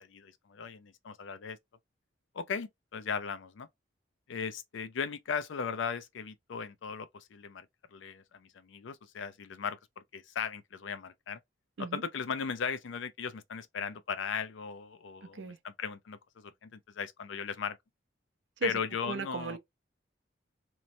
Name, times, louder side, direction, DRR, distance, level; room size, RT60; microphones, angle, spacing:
voice 1, 0.0-1.6 2.3-3.7 4.3-7.7 7.9-9.8 10.1-11.4 11.8-17.8 18.6-19.6, left 6 dB, 75° left, 0.4 m, -37 dB
voice 2, 18.6-19.6, right 3 dB, 70° right, 0.4 m, -36 dB
2.9 x 2.1 x 2.5 m
head